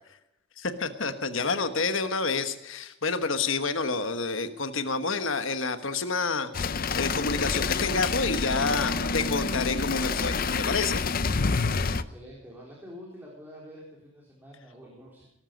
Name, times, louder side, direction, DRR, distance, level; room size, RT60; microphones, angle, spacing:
voice 1, 0.6-11.0, left 4 dB, 70° left, 9 dB, 1.3 m, -29 dB
sound 1, 6.5-12.0, left 4 dB, 45° left, 0.7 m, -28 dB
voice 2, 11.9-15.3, equal, 10° right, -4 dB, 3.9 m, -47 dB
19.0 x 14.0 x 5.3 m, 0.85 s
head